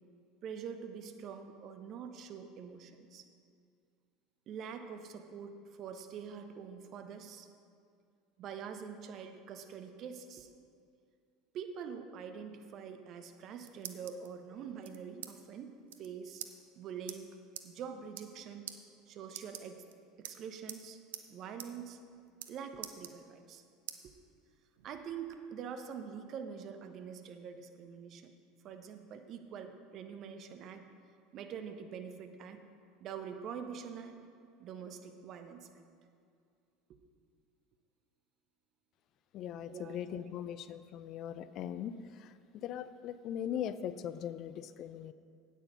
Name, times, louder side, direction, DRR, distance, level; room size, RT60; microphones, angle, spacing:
voice 1, 0.4-3.3 4.5-7.5 8.4-10.5 11.5-16.4 16.8-17.3 17.6-18.7 19.1-19.8 20.2-21.0 21.3-22.0 22.5-23.6 24.0-24.1 24.8-28.3 28.6-30.8 31.3-32.6 33.0-34.1 34.6-35.7 36.9-37.0 39.7-40.3, right 7 dB, 50° right, 7 dB, 0.9 m, -45 dB
sound 1, 13.3-14.3 14.8-15.3 15.6-15.7 15.9-16.1 16.4-16.5 17.1-17.2 17.6-17.7 18.0-18.4 18.7-18.8 19.3-19.9 20.2-20.8 21.1-21.3 21.6-21.7 22.0-22.5 22.8-23.5 23.9-24.0 24.5-25.4, right 11 dB, 75° right, 0.6 m, -45 dB
voice 2, 39.3-45.1, left 9 dB, 50° left, 14 dB, 0.4 m, -40 dB
9.0 x 8.5 x 5.4 m, 2.4 s
hypercardioid pair, 75°, 0 cm